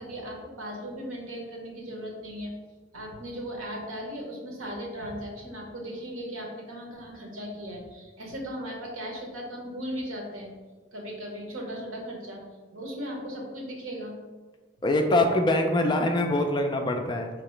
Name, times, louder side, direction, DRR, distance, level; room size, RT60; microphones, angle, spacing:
voice 1, 0.0-2.5 2.9-10.5 10.9-12.4 12.7-14.2, equal, 85° right, 0 dB, 1.0 m, -37 dB
voice 2, 14.8-17.3, left 1 dB, 20° left, 4 dB, 0.3 m, -24 dB
4.7 x 2.9 x 3.1 m, 1.3 s
head